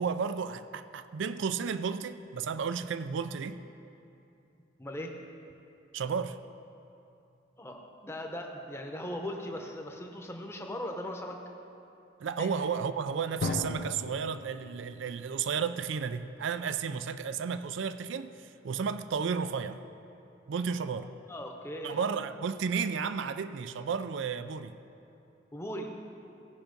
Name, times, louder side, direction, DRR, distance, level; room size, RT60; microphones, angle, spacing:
voice 1, 0.0-3.6 5.9-6.4 12.2-18.3 18.6-19.8 20.5-21.1 21.8-24.8, right 6 dB, 65° right, 12 dB, 0.4 m, -33 dB
voice 2, 4.8-5.1 7.6-11.4 12.4-12.5 21.3-22.1 25.5-25.9, equal, 15° left, 2 dB, 0.8 m, -39 dB
Drum, 13.4-16.1, left 2 dB, 55° left, 0.5 m, -37 dB
17.0 x 5.7 x 5.2 m, 2.7 s
head